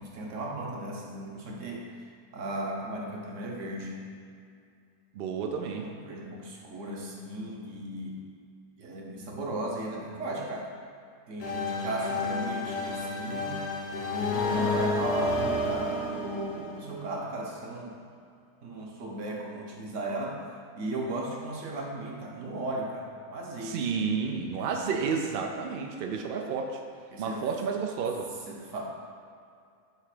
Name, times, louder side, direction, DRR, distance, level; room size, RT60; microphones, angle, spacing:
voice 1, 0.0-1.9 2.3-4.0 5.7-8.2 8.8-10.7 11.3-13.6 14.3-18.1 18.6-20.4 20.8-23.9 24.6-25.0 27.1-27.5 28.5-28.9, right 1 dB, 60° right, -1 dB, 1.2 m, -36 dB
voice 2, 5.1-5.8 23.6-26.8 27.2-28.3, right 5 dB, 80° right, 3 dB, 0.5 m, -31 dB
sound 1, 11.4-17.1, left 2 dB, 55° left, 0.9 m, -30 dB
6.6 x 3.4 x 4.9 m, 2.4 s
omnidirectional pair, 1.5 m